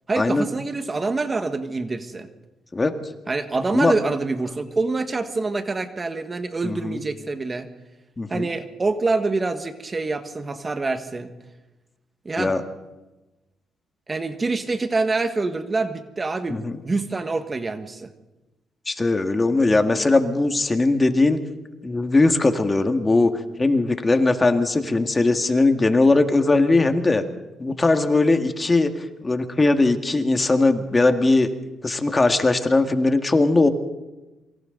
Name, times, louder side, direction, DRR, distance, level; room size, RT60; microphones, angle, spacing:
voice 1, 0.1-2.3 3.3-7.7 8.3-11.3 12.2-12.5 14.1-18.1, right 3 dB, 30° right, 8 dB, 1.6 m, -26 dB
voice 2, 6.6-7.0 8.2-8.5 12.4-12.6 16.5-16.8 18.9-21.4 21.8-23.3 23.6-27.2 27.6-28.9 29.2-31.5 31.8-33.7, left 2 dB, 25° left, 6 dB, 2.0 m, -19 dB
27.5 x 24.5 x 4.0 m, 1.1 s
cardioid pair, 90°, 0 cm